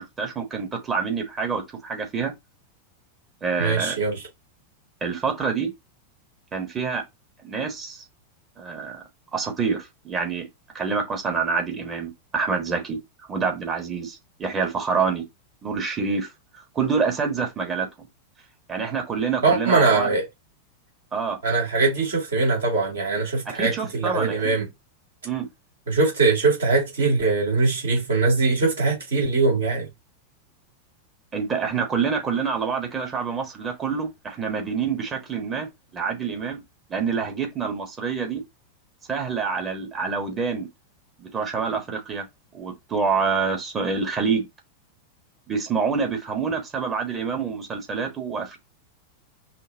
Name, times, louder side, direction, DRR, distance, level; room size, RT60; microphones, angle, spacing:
voice 1, 0.0-2.3 3.4-4.0 5.0-5.7 6.5-7.0 7.4-8.0 8.6-9.0 9.3-10.4 10.7-13.0 13.3-15.2 15.6-16.3 16.7-18.1 18.7-20.1 21.1-21.4 23.4-24.6 25.2-25.5 31.3-35.7 35.9-36.6 36.9-38.4 39.1-40.7 41.2-42.2 42.5-44.5 45.5-48.6, right 5 dB, 25° right, 1.3 m, -27 dB
voice 2, 3.6-4.2 19.4-20.3 21.4-24.7 25.9-29.9, right 3 dB, 65° right, 2.6 m, -21 dB
5.7 x 2.2 x 2.7 m
figure-of-eight pair, 90°, 0 cm